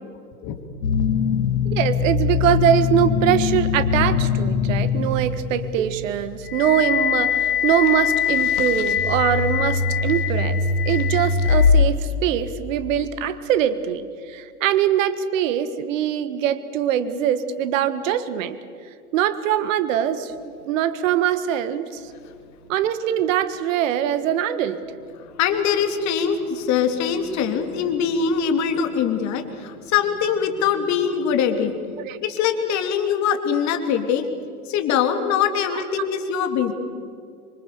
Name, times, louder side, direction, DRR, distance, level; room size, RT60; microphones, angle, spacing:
sound 1, 0.8-11.9, left 6 dB, 75° left, 3.0 m, -21 dB
voice 1, 1.6-10.6 10.8-18.6 19.1-22.0 22.7-24.8 32.0-32.2, right 10 dB, 60° right, 13 dB, 1.7 m, -23 dB
voice 2, 25.2-31.7 32.2-34.2 34.7-36.7, left 7 dB, 40° left, 7 dB, 3.2 m, -22 dB
27.0 x 24.0 x 6.9 m, 2.4 s
hypercardioid pair, 105°, 44 cm